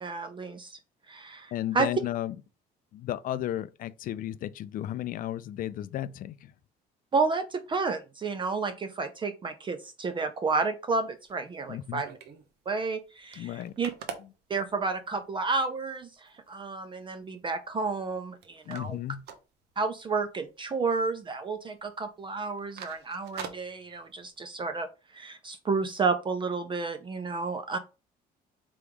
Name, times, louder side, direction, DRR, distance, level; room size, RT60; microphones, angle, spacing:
voice 1, 0.0-0.8 1.1-1.9 7.1-12.2 12.7-13.9 14.5-19.0 19.8-24.9 25.1-27.8, right 4 dB, 30° right, 0.5 m, -31 dB
voice 2, 1.5-2.4 2.9-6.5 11.7-12.0 13.4-13.7 18.7-19.2, left 12 dB, 55° left, 0.4 m, -34 dB
sound 1, 11.1-12.5 12.9-13.0 13.2-15.3 15.8-15.9 16.3-16.7 17.1-18.1 18.4-20.2 20.5-20.7 21.0-21.5 21.7-21.9 22.4-24.4, right 7 dB, 80° right, 0.9 m, -45 dB
3.4 x 3.0 x 4.8 m
cardioid pair, 110°, 17 cm